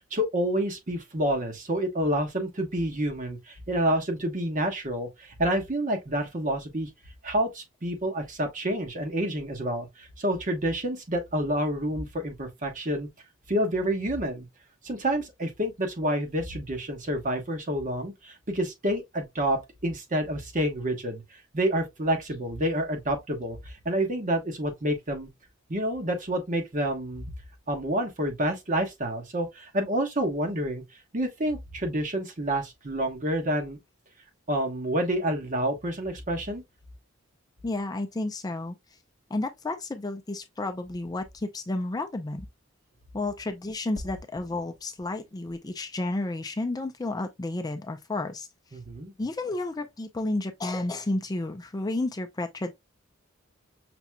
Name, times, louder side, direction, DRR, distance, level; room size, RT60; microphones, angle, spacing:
voice 1, 0.1-6.9 7.2-13.1 13.5-14.5 14.8-21.2 21.5-23.6 23.8-25.3 25.7-27.2 27.7-30.8 31.1-33.8 34.5-36.6 48.7-49.1, right 1 dB, 40° right, 1.1 m, -28 dB
voice 2, 37.6-38.8 39.3-42.5 43.1-48.5 49.2-52.7, left 2 dB, 20° left, 0.4 m, -31 dB
5.9 x 2.8 x 2.2 m
head